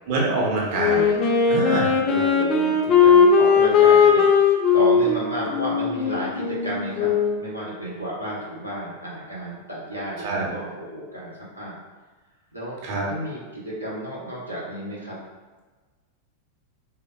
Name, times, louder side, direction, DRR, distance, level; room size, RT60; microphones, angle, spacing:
voice 1, 0.1-1.1 1.5-1.9 10.2-10.5 12.8-13.0, right 3 dB, 45° right, -4 dB, 0.6 m, -25 dB
Wind instrument woodwind instrument, 0.7-7.5, left 6 dB, 30° left, 0.3 m, -18 dB
voice 2, 2.1-11.8 12.5-12.8 13.1-15.2, right 1 dB, 90° right, -7 dB, 0.6 m, -32 dB
3.1 x 2.0 x 2.2 m, 1.3 s
figure-of-eight pair, 90°, 0 cm